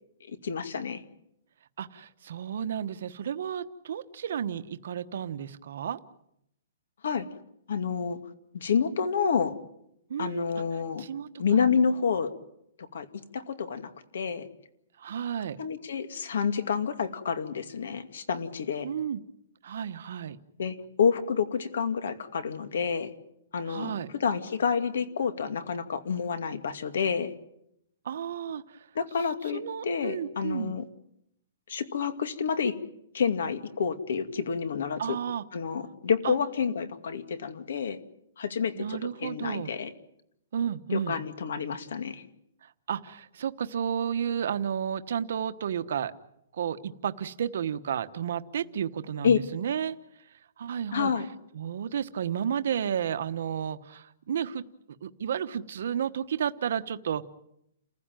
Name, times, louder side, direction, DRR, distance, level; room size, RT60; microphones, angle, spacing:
voice 1, 0.4-1.0 7.0-7.3 7.7-8.2 8.5-9.5 10.2-11.0 11.4-12.3 12.9-13.1 13.3-14.5 15.6-18.9 20.6-23.1 23.5-23.9 24.2-27.3 28.9-30.8 31.7-32.7 33.1-35.2 35.5-38.0 38.4-39.9 40.9-42.2 49.2-49.4 50.9-51.3, left 6 dB, 60° left, 10 dB, 2.3 m, -28 dB
voice 2, 1.8-6.0 10.1-10.6 11.0-11.3 15.0-15.6 18.8-19.2 19.6-20.4 23.6-24.1 28.0-28.8 29.5-30.7 35.0-35.4 36.2-36.3 38.7-39.7 40.5-41.2 42.9-46.1 46.5-50.0 50.6-51.1 51.5-54.6 55.0-57.2, right 8 dB, 50° right, 12 dB, 1.1 m, -32 dB
29.5 x 15.5 x 9.1 m, 0.79 s
hypercardioid pair, 180°, 0 cm